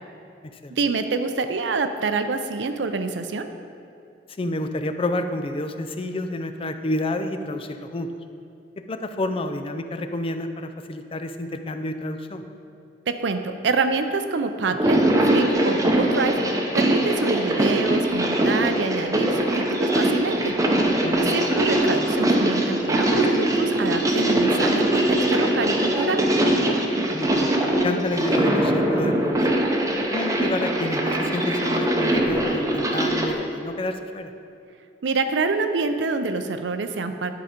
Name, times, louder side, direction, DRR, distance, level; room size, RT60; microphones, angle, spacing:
voice 1, 0.7-3.5 13.1-16.4 16.8-20.5 21.2-26.2 35.0-37.3, right 4 dB, 85° right, 8 dB, 0.5 m, -26 dB
voice 2, 4.4-8.1 8.8-12.4 21.0-21.5 27.1-29.6 30.1-34.3, left 1 dB, 30° left, 8 dB, 0.4 m, -29 dB
sound 1, 14.7-33.3, right 1 dB, 20° right, 0.7 m, -22 dB
10.5 x 4.9 x 5.1 m, 2.6 s
head